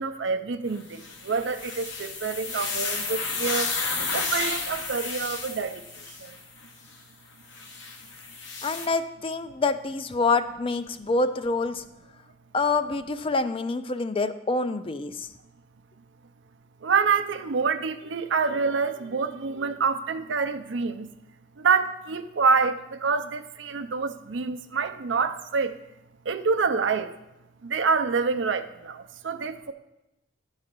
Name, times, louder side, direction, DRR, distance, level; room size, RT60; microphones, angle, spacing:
voice 1, 0.0-3.7 4.1-5.8 6.2-6.4 16.8-21.1 21.6-25.8 26.3-27.1 27.6-29.7, right 5 dB, 80° right, 9 dB, 0.5 m, -27 dB
sound 1, 0.9-6.4 7.5-8.9, left 4 dB, 80° left, 1.2 m, -32 dB
voice 2, 8.6-11.8 12.5-15.3, left 3 dB, 30° left, 11 dB, 0.4 m, -26 dB
9.8 x 4.0 x 6.7 m, 0.93 s
head